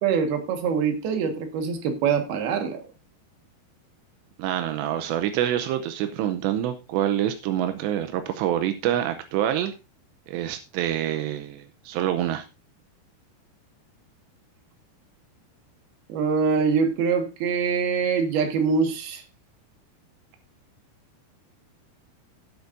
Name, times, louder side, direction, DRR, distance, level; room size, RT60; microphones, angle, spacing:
voice 1, 0.0-2.8 16.1-19.2, right 6 dB, 65° right, 3.4 m, -24 dB
voice 2, 4.4-9.7 10.3-12.4, right 11 dB, 85° right, 3.0 m, -26 dB
16.5 x 8.2 x 2.6 m
omnidirectional pair, 4.9 m